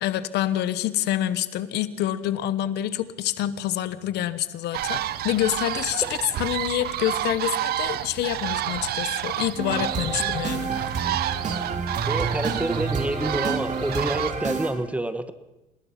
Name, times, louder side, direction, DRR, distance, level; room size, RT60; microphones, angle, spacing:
voice 1, 0.0-10.7, left 13 dB, 80° left, 14 dB, 1.2 m, -27 dB
sound 1, 4.7-14.3, right 13 dB, 70° right, 0.9 m, -30 dB
sound 2, 9.6-14.7, right 5 dB, 45° right, 3.2 m, -29 dB
voice 2, 12.1-15.3, right 1 dB, 10° right, 12 dB, 1.4 m, -28 dB
27.0 x 19.5 x 5.9 m, 0.96 s
cardioid pair, 110°, 17 cm